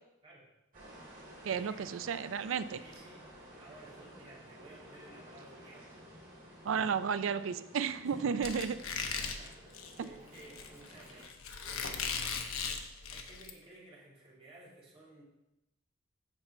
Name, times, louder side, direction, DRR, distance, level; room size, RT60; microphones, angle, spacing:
sound 1, 0.7-11.3, equal, 45° right, 2.8 m, -53 dB
voice 1, 0.9-2.2 2.8-3.3 3.5-6.1 8.0-8.7 9.2-12.8 13.1-15.2, right 2 dB, 25° right, -6 dB, 2.4 m, -56 dB
voice 2, 1.4-2.8 6.6-8.8, right 6 dB, 65° right, 13 dB, 0.4 m, -33 dB
Squeak, 8.4-13.5, left 5 dB, 90° left, 0.8 m, -38 dB
7.9 x 5.8 x 4.4 m, 0.91 s
head